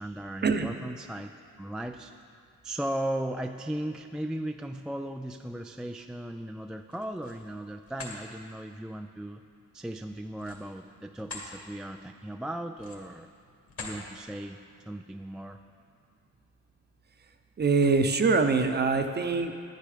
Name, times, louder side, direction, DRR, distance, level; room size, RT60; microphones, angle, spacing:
voice 1, 0.0-1.3 1.6-2.1 2.6-9.4 9.7-13.3 13.8-14.6 14.9-15.6, right 1 dB, ahead, 5 dB, 0.3 m, -36 dB
sound 1, 6.8-7.4 7.8-8.2 10.3-11.5 12.0-12.2 12.7-13.2 13.7-14.0, left 3 dB, 50° left, 2.4 m, -42 dB
voice 2, 17.6-19.5, right 4 dB, 35° right, 7 dB, 0.8 m, -24 dB
10.5 x 10.5 x 5.0 m, 2.3 s
cardioid pair, 90°, 30 cm